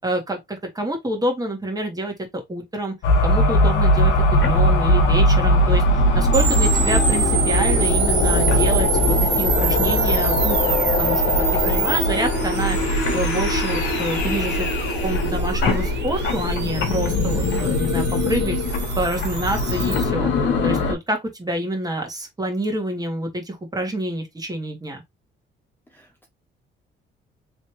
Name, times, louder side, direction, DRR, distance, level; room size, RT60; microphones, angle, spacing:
voice 1, 0.0-2.9 3.2-5.8 6.1-11.2 11.5-12.8 13.1-14.7 15.0-18.6 19.0-20.3 20.6-25.0, right 1 dB, 20° right, 1.8 m, -27 dB
sound 1, 3.0-20.9, left 1 dB, 70° left, 1.2 m, -20 dB
sound 2, 6.3-20.0, right 7 dB, 60° right, 1.1 m, -27 dB
voice 2, 17.4-17.7 25.9-26.3, left 3 dB, 10° left, 0.9 m, -39 dB
3.3 x 3.2 x 3.1 m
cardioid pair, 90°, 20 cm